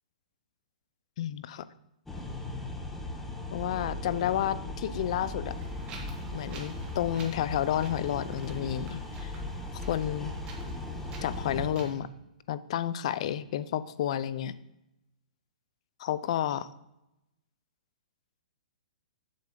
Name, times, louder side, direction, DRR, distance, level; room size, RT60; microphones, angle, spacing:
voice 1, 1.2-1.7 3.5-5.6 6.3-9.3 9.9-10.3 11.2-12.1 12.5-14.5 16.0-16.7, left 11 dB, 50° left, 16 dB, 0.4 m, -31 dB
sound 1, 2.1-11.7, left 2 dB, 5° left, 0.8 m, -38 dB
Wind, 5.5-11.9, right 3 dB, 20° right, 1.3 m, -47 dB
7.5 x 6.8 x 3.7 m, 0.88 s
hypercardioid pair, 150°, 4 cm